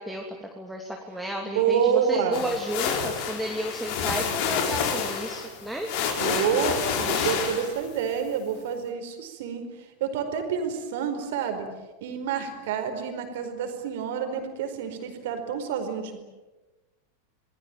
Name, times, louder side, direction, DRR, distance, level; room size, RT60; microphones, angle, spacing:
voice 1, 0.0-5.9, equal, ahead, 1 dB, 3.0 m, -33 dB
voice 2, 1.5-2.4 6.2-9.7 10.0-11.7 12.0-16.2, right 7 dB, 55° right, 7 dB, 4.7 m, -28 dB
sound 1, 2.3-8.0, left 6 dB, 45° left, 4.7 m, -28 dB
28.5 x 20.5 x 9.1 m, 1.2 s
figure-of-eight pair, 90°, 0 cm